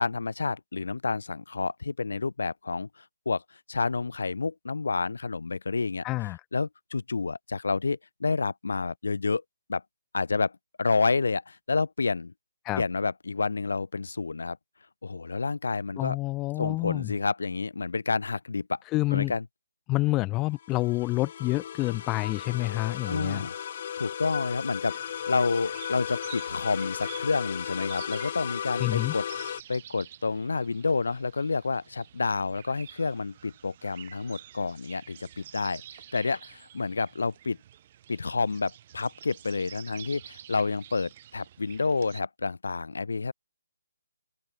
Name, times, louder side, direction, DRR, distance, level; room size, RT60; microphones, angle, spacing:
voice 1, 0.0-2.9 3.3-3.4 3.7-6.0 6.5-9.4 9.7-9.8 10.1-10.5 10.8-12.3 12.8-14.6 15.0-16.2 16.6-18.8 19.1-19.4 23.1-23.6 24.0-29.2 29.7-35.8 36.1-37.6 38.1-43.3, left 4 dB, 70° left, 2.0 m, -29 dB
voice 2, 6.0-6.4 12.6-12.8 16.0-17.1 18.9-19.3 19.9-23.4 28.8-29.1, left 20 dB, 20° left, 1.0 m, -28 dB
sound 1, 20.5-29.6, left 9 dB, 40° left, 2.3 m, -35 dB
sound 2, 24.8-42.2, right 11 dB, 35° right, 6.5 m, -49 dB
open air
figure-of-eight pair, 150°, 0 cm